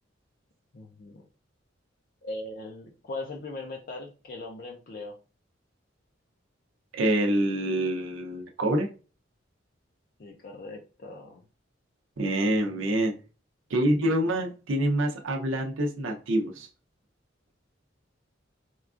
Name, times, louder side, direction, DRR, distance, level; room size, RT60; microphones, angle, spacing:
voice 1, 0.7-1.2 2.2-5.2 10.2-11.4, left 2 dB, 50° left, 1 dB, 0.4 m, -39 dB
voice 2, 6.9-8.9 12.2-13.1 13.7-16.7, right 1 dB, 75° right, 2 dB, 0.6 m, -26 dB
4.3 x 2.3 x 2.4 m, 0.35 s
head